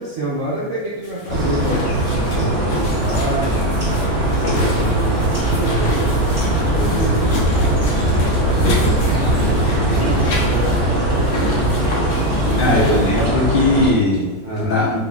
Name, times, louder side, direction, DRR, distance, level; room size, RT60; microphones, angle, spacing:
voice 1, 0.0-3.5 4.4-7.4 8.5-10.8 12.3-12.8 14.4-14.8, right 1 dB, 65° right, -7 dB, 0.7 m, -27 dB
sound 1, 1.0-13.3, left 3 dB, 60° left, 1.3 m, -29 dB
sound 2, 1.3-13.9, right 1 dB, 15° right, 1.4 m, -19 dB
voice 2, 12.5-14.3 14.6-15.0, left 2 dB, 80° left, -5 dB, 1.9 m, -18 dB
4.0 x 3.9 x 2.3 m, 1.2 s
omnidirectional pair, 2.1 m